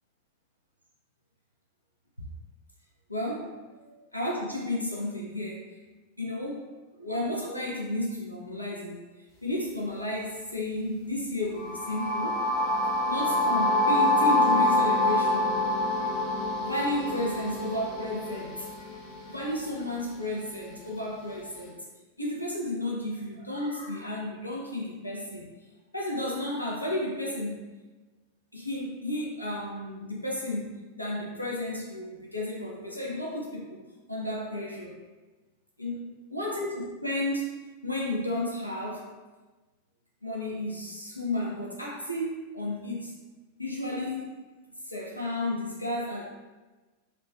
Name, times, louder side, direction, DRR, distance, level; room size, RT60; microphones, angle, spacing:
voice 1, 3.1-5.8 6.2-6.6 7.0-12.4 13.1-15.6 15.9-16.2 16.6-19.0 19.2-21.7 22.2-25.5 25.9-27.7 28.5-33.8 34.1-34.9 35.8-36.0 36.3-37.5 37.8-39.1 40.2-43.1 43.6-44.3 44.8-46.2, left 1 dB, 90° left, -4 dB, 0.4 m, -33 dB
sound 1, 11.6-19.5, left 1 dB, 35° left, 0.6 m, -26 dB
2.9 x 2.2 x 2.4 m, 1.2 s
figure-of-eight pair, 90°, 0 cm